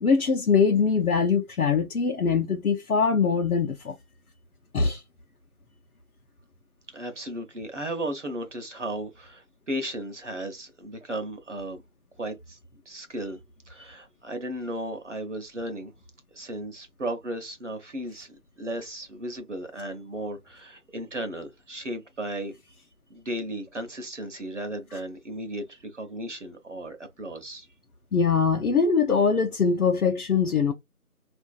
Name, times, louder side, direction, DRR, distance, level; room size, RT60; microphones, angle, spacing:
voice 1, 0.0-3.9 4.7-5.0 28.1-30.7, left 5 dB, 75° left, 0.7 m, -22 dB
voice 2, 6.9-11.8 12.2-12.6 12.9-13.4 13.7-15.9 16.3-22.5 23.1-27.7, right 1 dB, 55° right, 0.7 m, -35 dB
3.9 x 2.5 x 2.3 m
figure-of-eight pair, 175°, 44 cm